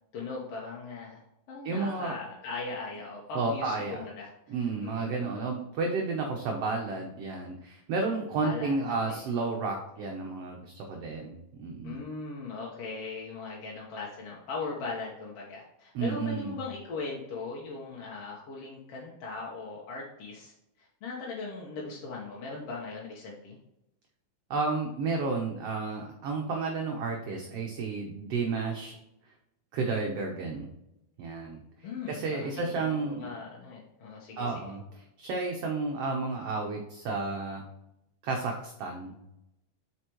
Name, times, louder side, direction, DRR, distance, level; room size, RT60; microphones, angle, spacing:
voice 1, 0.1-1.2 1.5-4.3 4.8-5.3 8.4-9.2 11.8-20.5 20.8-23.6 31.8-34.5, left 4 dB, 60° left, -3 dB, 1.8 m, -39 dB
voice 2, 1.6-2.1 3.3-4.0 4.5-12.0 15.9-16.6 24.5-29.0 29.7-30.7 31.2-31.6 32.1-33.3 34.4-37.6 38.2-39.2, right 3 dB, 70° right, 1 dB, 1.5 m, -32 dB
8.1 x 5.2 x 3.0 m, 0.86 s
omnidirectional pair, 3.7 m